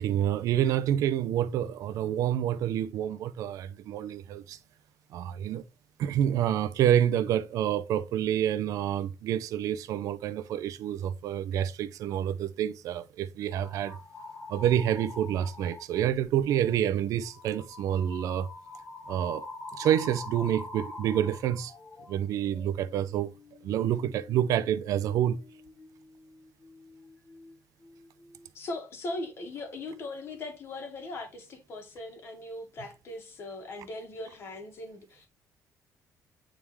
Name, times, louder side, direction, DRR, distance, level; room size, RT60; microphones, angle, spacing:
voice 1, 0.0-4.6 5.1-5.6 6.0-14.0 14.5-18.5 19.1-19.5 19.8-21.7 22.1-23.3 23.6-25.4, right 10 dB, 70° right, 0.5 m, -28 dB
sound 1, 13.5-16.1 16.5-16.8 17.2-27.6 27.8-28.5, left 3 dB, 25° left, 0.8 m, -46 dB
voice 2, 28.5-35.3, left 2 dB, 45° left, 1.6 m, -39 dB
8.6 x 3.6 x 3.2 m
cardioid pair, 170°, 6 cm